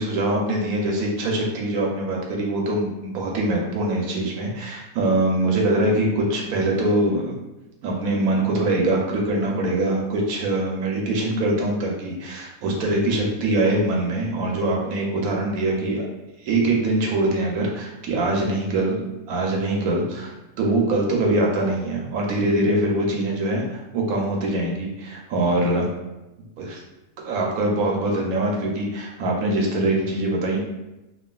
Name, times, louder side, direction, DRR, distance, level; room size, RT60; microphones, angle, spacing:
voice 1, 0.0-7.3 7.8-16.1 16.4-23.6 23.9-25.9 26.6-26.8 27.2-30.6, right 2 dB, 70° right, -1 dB, 1.0 m, -23 dB
3.1 x 2.3 x 2.3 m, 0.98 s
omnidirectional pair, 1.7 m